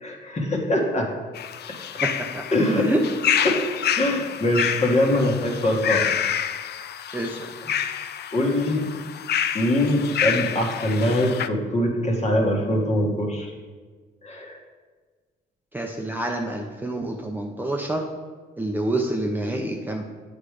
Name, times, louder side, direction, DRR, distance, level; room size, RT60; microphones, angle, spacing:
voice 1, 0.0-1.1 2.5-2.9 3.4-6.1 8.3-8.9 9.5-13.5 14.2-14.6, left 1 dB, 35° left, 0 dB, 1.8 m, -23 dB
sound 1, 1.3-11.5, left 9 dB, 55° left, 0.4 m, -28 dB
voice 2, 2.0-2.5 2.8-3.0 7.1-7.5 15.7-18.1 18.6-20.0, right 1 dB, 10° right, 1 dB, 0.7 m, -27 dB
8.3 x 5.2 x 4.9 m, 1.4 s
cardioid pair, 90°, 20 cm